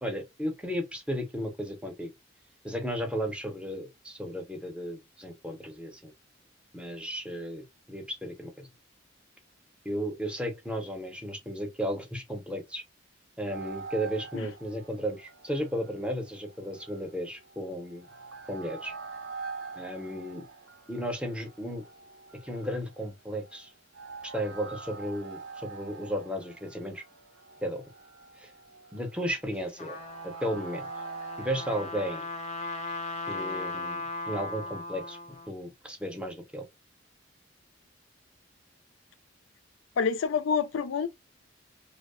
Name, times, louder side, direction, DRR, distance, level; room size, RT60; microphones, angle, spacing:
voice 1, 0.0-2.1 2.6-6.1 6.7-8.7 9.8-12.8 13.4-18.1 18.5-18.9 19.8-20.4 20.9-21.8 22.4-23.7 24.2-27.0 27.6-27.9 28.4-28.5 28.9-30.0 30.2-30.8 31.4-32.3 33.3-35.2 35.5-36.7, equal, 5° right, 0.6 m, -34 dB
sound 1, 13.5-31.9, right 4 dB, 70° right, 0.6 m, -45 dB
Trumpet, 29.5-35.5, left 2 dB, 35° left, 0.5 m, -37 dB
voice 2, 40.0-41.1, left 6 dB, 80° left, 0.4 m, -27 dB
2.6 x 2.0 x 2.4 m
head